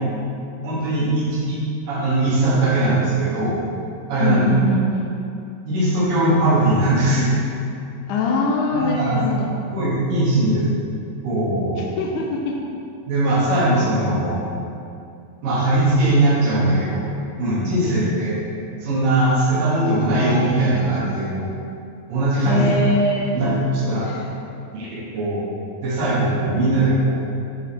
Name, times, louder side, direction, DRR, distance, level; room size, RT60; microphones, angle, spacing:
voice 1, 0.6-1.6 1.9-3.6 4.1-4.5 5.7-7.3 8.7-9.2 9.6-10.6 11.2-11.8 13.1-14.4 15.4-17.0 17.4-18.4 18.8-21.5 22.1-22.7 23.3-24.1 24.7-25.5 25.8-27.1, right 1 dB, 80° right, -9 dB, 3.5 m, -20 dB
voice 2, 4.2-5.1 8.1-9.5 11.8-12.6 17.8-17.9 22.5-23.3 24.0-24.2, left 2 dB, 75° left, -1 dB, 2.0 m, -22 dB
10.5 x 4.9 x 3.5 m, 2.5 s
omnidirectional pair, 3.9 m